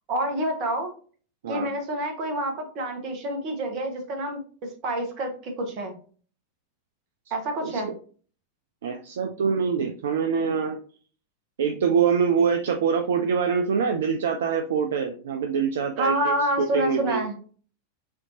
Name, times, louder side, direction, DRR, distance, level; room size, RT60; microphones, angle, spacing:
voice 1, 0.1-0.9 1.5-5.9 7.3-7.9 16.0-17.3, right 1 dB, 40° right, 4 dB, 1.3 m, -28 dB
voice 2, 8.8-10.8 11.6-17.2, right 6 dB, 60° right, 6 dB, 0.4 m, -25 dB
6.5 x 2.8 x 2.8 m, 0.42 s
figure-of-eight pair, 90°, 0 cm